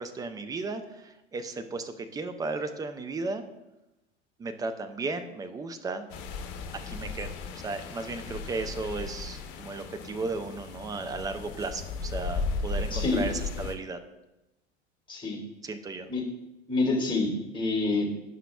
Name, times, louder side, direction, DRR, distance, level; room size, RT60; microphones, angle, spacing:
voice 1, 0.0-3.4 4.4-6.1 6.9-7.3 7.6-14.0 15.6-16.1, right 3 dB, 10° right, 8 dB, 0.3 m, -35 dB
sound 1, 6.1-13.7, left 4 dB, 50° left, 0.9 m, -36 dB
voice 2, 12.9-13.3 15.1-15.4 16.1-16.2 16.7-18.1, left 3 dB, 15° left, -2 dB, 1.9 m, -27 dB
9.4 x 5.7 x 2.3 m, 0.95 s
figure-of-eight pair, 80°, 35 cm